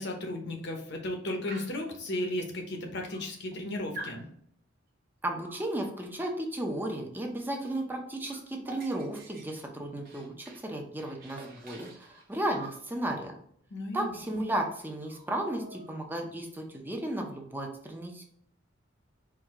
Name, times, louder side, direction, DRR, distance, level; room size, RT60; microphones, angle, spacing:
voice 1, 0.0-4.3 13.7-14.4, left 1 dB, 60° left, 2 dB, 1.0 m, -35 dB
Dog, 1.5-1.9 2.7-2.8 3.1-3.6 3.9-4.2 5.4-5.7 7.5-7.7 8.0-10.7 11.0-12.8 14.1-14.2 14.5-14.7 15.0-16.3, right 2 dB, 50° right, 0.9 m, -48 dB
voice 2, 5.2-13.3 13.9-18.3, right 1 dB, 10° right, 1 dB, 0.7 m, -34 dB
4.7 x 2.7 x 3.7 m, 0.66 s
head